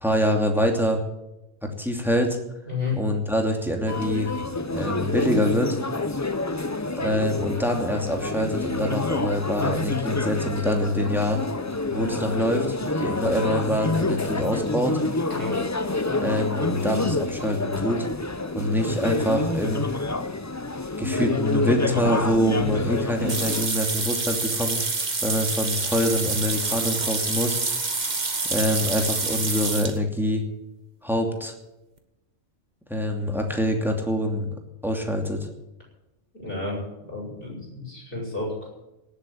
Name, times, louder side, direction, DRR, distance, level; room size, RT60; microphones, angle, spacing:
voice 1, 0.0-1.0 1.8-2.4 3.0-4.3 4.7-5.8 7.0-11.4 11.9-15.0 16.2-18.1 18.5-19.8 21.0-24.8 25.2-27.6 28.5-30.4 31.0-31.5 32.9-34.5 34.8-35.5, equal, ahead, 2 dB, 2.6 m, -25 dB
voice 2, 2.7-3.0 15.3-15.6 36.3-36.8 37.1-38.7, left 4 dB, 45° left, -3 dB, 7.3 m, -31 dB
sound 1, 3.9-23.7, left 2 dB, 20° left, 0.6 m, -28 dB
sound 2, 23.3-30.0, right 3 dB, 35° right, 1.6 m, -27 dB
18.0 x 8.1 x 8.5 m, 0.94 s
omnidirectional pair, 1.3 m